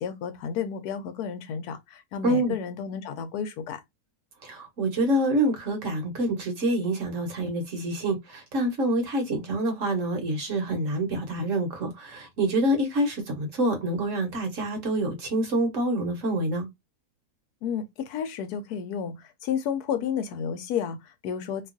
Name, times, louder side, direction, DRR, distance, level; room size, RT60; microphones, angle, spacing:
voice 1, 0.0-3.8 17.6-21.7, left 7 dB, 80° left, 1.1 m, -31 dB
voice 2, 2.2-2.5 4.4-16.7, right 1 dB, 55° right, 1.2 m, -26 dB
2.9 x 2.3 x 2.4 m
omnidirectional pair, 1.7 m